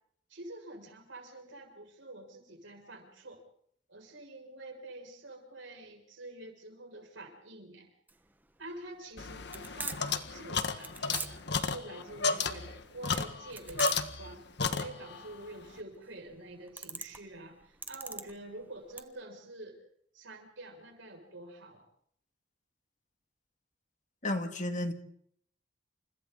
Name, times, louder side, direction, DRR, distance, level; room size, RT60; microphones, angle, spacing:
voice 1, 0.3-3.4 3.9-7.9 8.6-19.8 20.1-21.8, right 2 dB, 80° right, 2 dB, 6.7 m, -47 dB
sound 1, 8.1-19.0, right 3 dB, 10° right, 1.3 m, -44 dB
sound 2, 9.2-14.3 14.6-15.3, left 4 dB, 65° left, 1.7 m, -33 dB
voice 2, 24.2-24.9, left 1 dB, 40° left, 6 dB, 2.3 m, -32 dB
29.5 x 28.0 x 4.1 m, 0.67 s
head